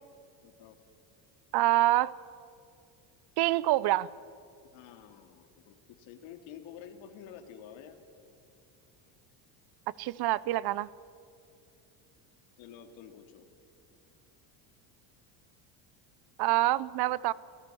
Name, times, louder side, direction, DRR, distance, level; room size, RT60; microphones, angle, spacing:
voice 1, 0.4-0.8 4.6-8.0 12.6-13.5, left 9 dB, 70° left, 6 dB, 2.8 m, -49 dB
voice 2, 1.5-2.1 3.4-4.1 10.0-10.9 16.4-17.3, right 16 dB, 50° right, 21 dB, 0.7 m, -26 dB
30.0 x 17.0 x 7.0 m, 2.5 s
supercardioid pair, 110°, 49 cm